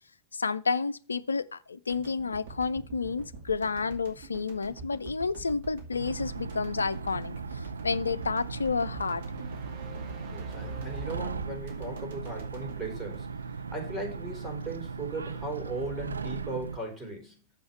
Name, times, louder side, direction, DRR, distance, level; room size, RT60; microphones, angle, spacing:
voice 1, 0.3-9.2, left 4 dB, 75° left, 0.5 m, -30 dB
sound 1, 1.9-14.1, right 3 dB, 55° right, 2.2 m, -46 dB
sound 2, 6.0-16.8, right 5 dB, 75° right, 0.5 m, -38 dB
sound 3, 9.1-11.9, right 3 dB, 35° right, 1.5 m, -46 dB
voice 2, 10.0-17.4, right 2 dB, 5° right, 3.9 m, -38 dB
7.4 x 5.6 x 5.4 m
figure-of-eight pair, 90°, 0 cm